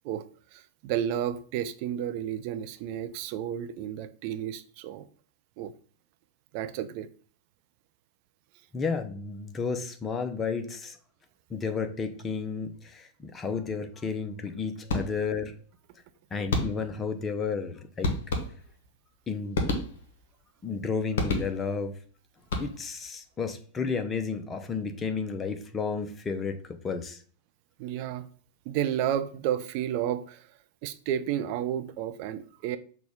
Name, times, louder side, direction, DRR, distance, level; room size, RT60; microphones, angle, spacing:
voice 1, 0.5-5.0 5.6-5.7 6.5-7.1 27.8-28.3 28.7-30.5 30.8-32.8, right 10 dB, 45° right, 0.4 m, -31 dB
voice 2, 8.7-11.0 11.5-15.5 16.3-18.1 19.3-19.7 20.6-21.9 22.6-26.6 26.8-27.2, left 5 dB, 20° left, 0.6 m, -32 dB
sound 1, 14.9-15.5 16.5-17.1 18.0-18.9 19.5-20.3 21.2-21.9 22.4-23.1, left 2 dB, 55° left, 0.8 m, -30 dB
5.9 x 2.3 x 3.6 m
figure-of-eight pair, 90°, 0 cm